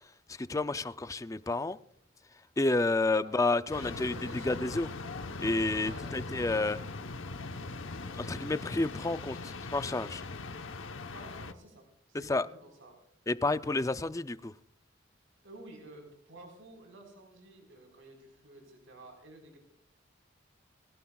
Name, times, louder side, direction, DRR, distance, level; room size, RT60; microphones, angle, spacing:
voice 1, 0.4-1.8 2.6-4.9 5.4-6.8 8.2-10.2 12.1-12.5 13.3-14.5, left 2 dB, 15° left, 0.4 m, -30 dB
sound 1, 3.7-11.5, left 3 dB, 85° left, 1.0 m, -40 dB
voice 2, 3.7-4.6 5.8-6.2 8.9-9.0 11.1-13.0 15.4-19.6, right 2 dB, 85° right, 4.4 m, -52 dB
21.5 x 17.5 x 2.3 m
head